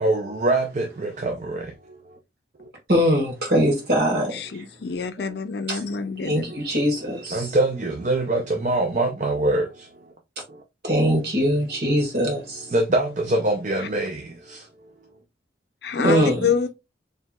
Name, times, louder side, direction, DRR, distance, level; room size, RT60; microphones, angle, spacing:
voice 1, 0.0-1.6 7.3-9.7 12.7-14.2, right 2 dB, 40° right, 0.5 m, -23 dB
voice 2, 2.9-4.4 5.7-5.8 6.2-7.5 10.8-12.7 16.0-16.5, equal, 60° right, 1.8 m, -22 dB
voice 3, 4.3-6.5 15.8-16.7, left 6 dB, 60° left, 0.5 m, -27 dB
4.5 x 3.3 x 2.3 m
head